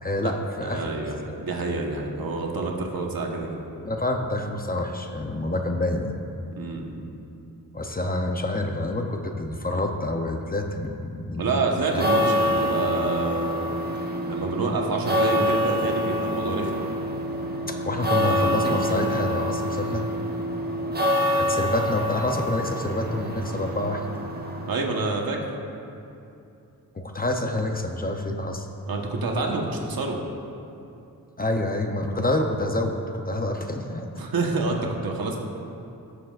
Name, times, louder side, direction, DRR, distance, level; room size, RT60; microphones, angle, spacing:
voice 1, 0.0-0.9 3.8-6.2 7.7-11.7 11.9-12.0 17.7-20.1 21.3-24.0 26.9-28.7 31.4-33.0 33.2-34.1, left 1 dB, 25° left, 3 dB, 0.7 m, -27 dB
voice 2, 0.6-3.6 6.6-7.0 11.4-13.5 14.3-16.8 24.7-25.4 28.9-30.2 34.2-35.4, right 3 dB, 70° right, 0 dB, 1.3 m, -27 dB
sound 1, 11.8-25.3, equal, 25° right, 1.0 m, -26 dB
17.5 x 7.2 x 2.5 m, 2.7 s
wide cardioid pair, 110°, 38 cm